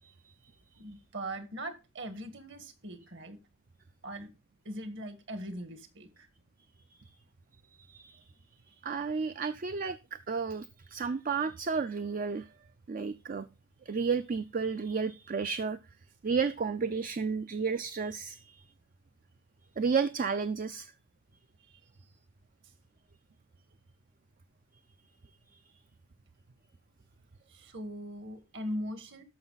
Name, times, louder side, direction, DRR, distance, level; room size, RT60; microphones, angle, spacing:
voice 1, 0.0-0.3 7.1-7.2 7.8-8.3 8.7-12.5 12.9-13.5 13.9-15.8 16.2-18.7 19.8-20.9 25.5-25.6, right 5 dB, 40° right, 11 dB, 0.4 m, -32 dB
voice 2, 0.8-3.4 4.0-4.3 4.6-6.3 21.6-21.8 22.6-22.7 27.5-29.2, equal, 55° right, 10 dB, 1.5 m, -40 dB
13.0 x 5.4 x 4.0 m, 0.29 s
head